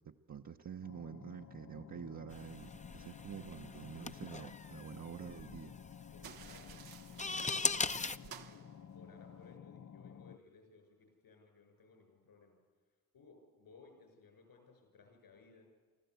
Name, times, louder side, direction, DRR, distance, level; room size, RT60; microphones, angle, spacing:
voice 1, 0.0-5.7, right 8 dB, 50° right, 1 dB, 1.0 m, -48 dB
sound 1, 0.8-10.4, left 8 dB, 50° left, 0.7 m, -53 dB
sound 2, 2.3-8.2, left 3 dB, 20° left, 0.8 m, -40 dB
voice 2, 6.1-8.6 8.9-12.6 13.1-15.7, left 4 dB, 75° left, 4 dB, 6.9 m, -61 dB
sound 3, 6.2-9.6, right 8 dB, 80° right, 1.1 m, -55 dB
25.5 x 14.5 x 8.2 m, 1.4 s
supercardioid pair, 45°, 36 cm